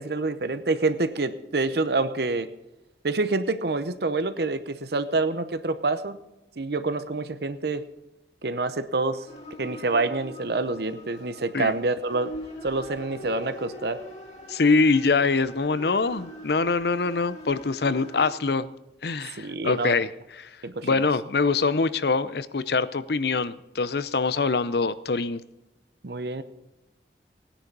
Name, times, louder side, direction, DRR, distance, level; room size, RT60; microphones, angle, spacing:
voice 1, 0.0-2.5 3.0-6.2 6.6-7.8 8.4-9.2 9.6-12.3 12.6-14.0 19.4-19.9 20.6-21.0 26.0-26.4, right 3 dB, 65° right, 11 dB, 0.8 m, -27 dB
sound 1, 9.3-18.3, equal, 40° left, 2.8 m, -43 dB
voice 2, 14.5-18.7 19.0-20.1 20.4-20.5 20.8-25.4, left 4 dB, 65° left, 15 dB, 0.7 m, -24 dB
17.0 x 10.0 x 5.3 m, 0.95 s
head